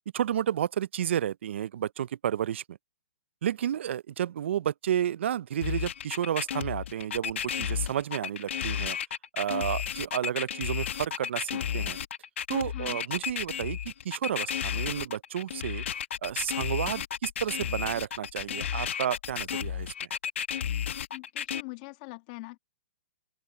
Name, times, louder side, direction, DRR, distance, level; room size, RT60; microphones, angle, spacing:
voice 1, 0.1-2.8 3.4-9.0 9.3-12.0 12.5-15.8 16.2-19.9, right 10 dB, 65° right, 0.5 m, -31 dB
sound 1, 5.6-21.6, left 9 dB, 70° left, 1.6 m, -33 dB
voice 2, 21.1-22.6, left 27 dB, 35° left, 1.6 m, -43 dB
open air
hypercardioid pair, 145°, 7 cm